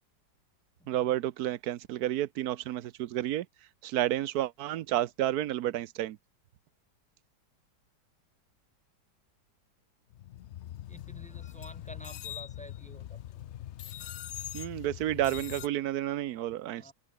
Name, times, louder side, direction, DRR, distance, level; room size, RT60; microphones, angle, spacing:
voice 1, 0.9-3.5 3.8-6.2 14.5-16.9, right 13 dB, 70° right, 1.2 m, -31 dB
sound 1, 10.1-15.7, left 12 dB, 80° left, 0.6 m, -42 dB
voice 2, 10.9-13.2 16.8-16.9, equal, 5° left, 0.9 m, -49 dB
open air
omnidirectional pair, 1.8 m